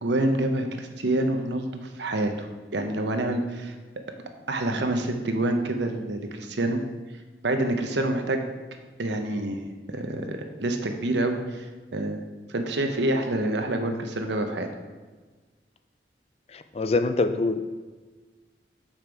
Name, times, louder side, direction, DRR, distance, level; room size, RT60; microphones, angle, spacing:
voice 1, 0.0-2.5 2.7-3.7 4.5-6.8 7.4-8.4 9.0-12.2 12.5-14.7, right 1 dB, 80° right, 5 dB, 0.9 m, -27 dB
voice 2, 16.5-17.6, left 3 dB, 35° left, 9 dB, 0.3 m, -25 dB
6.8 x 5.7 x 4.6 m, 1.3 s
head